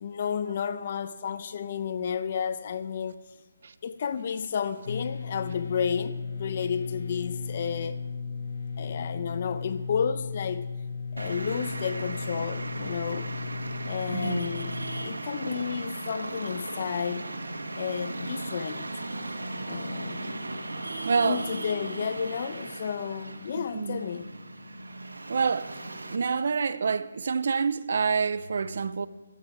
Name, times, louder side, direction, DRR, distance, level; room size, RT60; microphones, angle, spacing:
voice 1, 0.0-3.2 3.8-8.0 8.8-10.7 11.1-13.3 13.9-14.8 15.0-17.3 17.8-18.9 19.7-20.4 21.2-24.3, left 7 dB, 45° left, 0.9 m, -32 dB
sound 1, 4.9-15.1, left 5 dB, 65° left, 1.1 m, -36 dB
Traffic noise roadway noise, 11.2-26.2, right 2 dB, 90° right, 1.5 m, -37 dB
voice 2, 14.1-14.5 21.0-21.4 23.6-24.0 25.3-25.7 26.1-29.1, right 5 dB, 60° right, 0.7 m, -27 dB
15.5 x 12.5 x 4.8 m
figure-of-eight pair, 155°, 0 cm